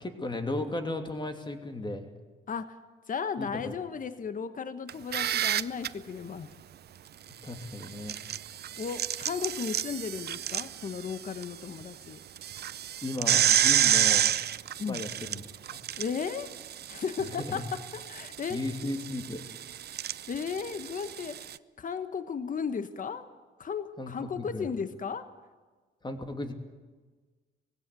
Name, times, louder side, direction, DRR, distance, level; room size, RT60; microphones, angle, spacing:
voice 1, 0.0-2.1 3.4-3.7 7.4-8.2 13.0-14.4 14.6-15.4 15.7-15.8 17.4-17.6 18.5-19.4 24.0-24.7 26.0-26.5, left 2 dB, 25° left, 6 dB, 2.8 m, -35 dB
voice 2, 3.1-6.5 8.8-12.2 14.8-15.0 16.0-16.5 16.9-18.6 20.3-21.5 21.8-23.3 23.6-25.3, left 6 dB, 40° left, 11 dB, 1.3 m, -35 dB
sound 1, 4.9-5.9 7.8-11.4 11.8-11.9 12.4-21.6, right 10 dB, 55° right, 0.6 m, -29 dB
21.0 x 16.5 x 9.8 m, 1.3 s
cardioid pair, 90°, 20 cm